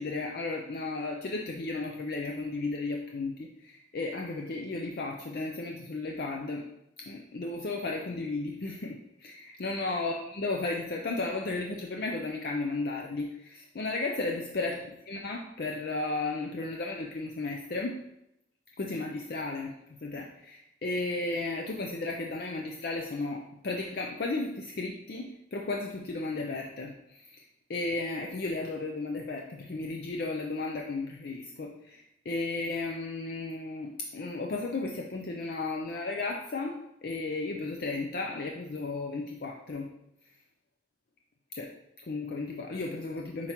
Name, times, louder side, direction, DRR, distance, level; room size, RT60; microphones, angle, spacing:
voice 1, 0.0-6.6 7.0-18.0 18.8-19.7 20.0-27.4 27.7-39.9 41.5-41.7 42.1-43.5, left 3 dB, 55° left, 1 dB, 0.5 m, -34 dB
7.4 x 4.5 x 3.0 m, 0.83 s
head